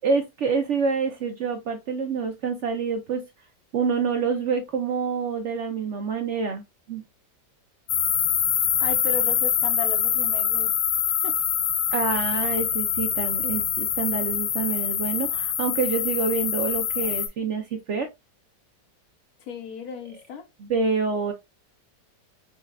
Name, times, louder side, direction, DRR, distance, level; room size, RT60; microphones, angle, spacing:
voice 1, 0.0-3.2 3.7-6.6 6.9-7.0 11.9-18.1 20.6-21.3, right 5 dB, 70° right, 0.7 m, -27 dB
sound 1, 7.9-17.3, left 9 dB, 80° left, 1.4 m, -25 dB
voice 2, 8.8-10.7 11.2-11.3 19.5-20.4, left 4 dB, 65° left, 1.2 m, -35 dB
5.3 x 2.4 x 2.2 m
omnidirectional pair, 1.9 m